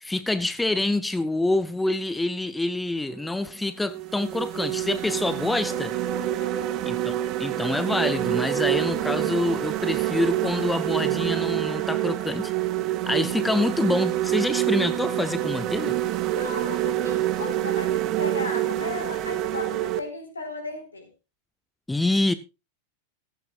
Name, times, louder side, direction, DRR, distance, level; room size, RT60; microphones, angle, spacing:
voice 1, 0.0-5.9 6.8-7.1 7.4-12.5 13.1-16.0 21.9-22.3, left 2 dB, 5° left, 0.8 m, -26 dB
sound 1, 3.1-3.3 3.8-20.0, right 14 dB, 35° right, 1.5 m, -27 dB
voice 2, 6.4-6.7 13.3-13.4 16.3-21.1, left 3 dB, 75° left, 4.5 m, -36 dB
15.0 x 15.0 x 2.4 m
figure-of-eight pair, 90°, 0 cm